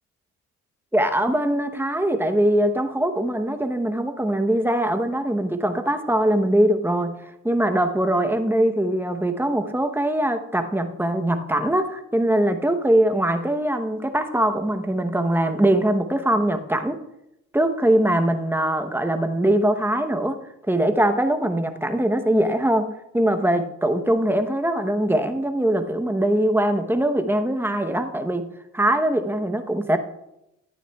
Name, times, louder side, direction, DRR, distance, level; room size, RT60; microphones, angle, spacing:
voice 1, 0.9-7.2 7.4-17.0 17.5-20.4 20.7-28.5 28.7-30.0, right 1 dB, 5° right, 7 dB, 0.9 m, -22 dB
14.0 x 9.2 x 2.3 m, 0.86 s
cardioid pair, 90°, 30 cm